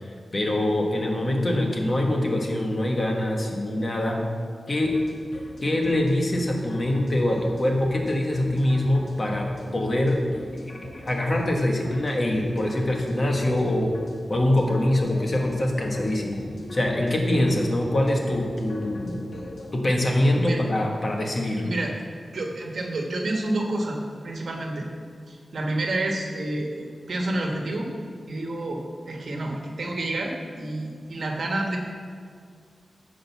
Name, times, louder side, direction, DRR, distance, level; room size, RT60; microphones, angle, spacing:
voice 1, 0.3-4.2 4.7-4.9 5.6-9.5 9.7-10.2 10.5-13.9 14.3-16.4 16.7-19.2 19.7-21.6, left 1 dB, 40° left, 0 dB, 1.4 m, -24 dB
sound 1, 4.7-19.8, left 2 dB, 75° left, 1.3 m, -41 dB
voice 2, 22.3-24.9 25.3-27.9 28.3-31.8, right 2 dB, 70° right, 1 dB, 1.3 m, -29 dB
10.5 x 5.2 x 6.9 m, 2.2 s
wide cardioid pair, 115°, 0 cm